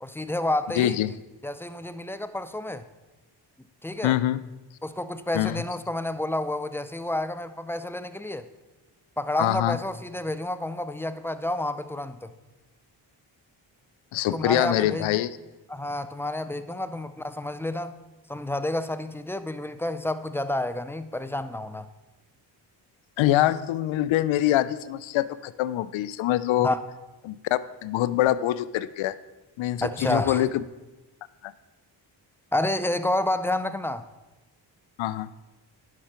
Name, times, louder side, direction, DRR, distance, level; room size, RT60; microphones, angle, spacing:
voice 1, 0.0-1.0 1.4-2.8 3.8-4.2 4.8-8.5 9.2-12.3 14.3-15.1 15.7-17.9 18.3-21.9 26.6-26.8 29.8-30.4 32.5-34.1, left 1 dB, 5° left, 12 dB, 0.5 m, -29 dB
voice 2, 0.8-1.1 4.0-4.4 5.3-5.6 9.4-9.8 14.1-15.3 23.2-26.7 27.2-29.2 29.6-30.5 31.4-31.5 35.0-35.3, left 13 dB, 75° left, 16 dB, 0.6 m, -24 dB
10.5 x 5.8 x 4.4 m, 1.1 s
cardioid pair, 60°, 47 cm